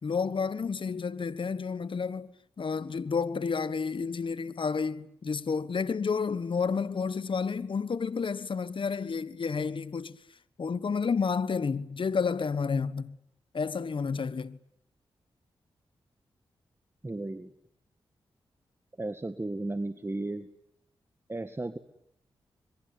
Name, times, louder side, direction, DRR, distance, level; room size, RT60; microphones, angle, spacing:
voice 1, 0.0-10.2 10.6-13.1 13.5-14.6, left 5 dB, 55° left, 1.3 m, -30 dB
voice 2, 17.0-17.5 19.0-20.5 21.3-21.8, right 2 dB, 25° right, 1.9 m, -34 dB
27.0 x 22.5 x 9.8 m
supercardioid pair, 45°, 10 cm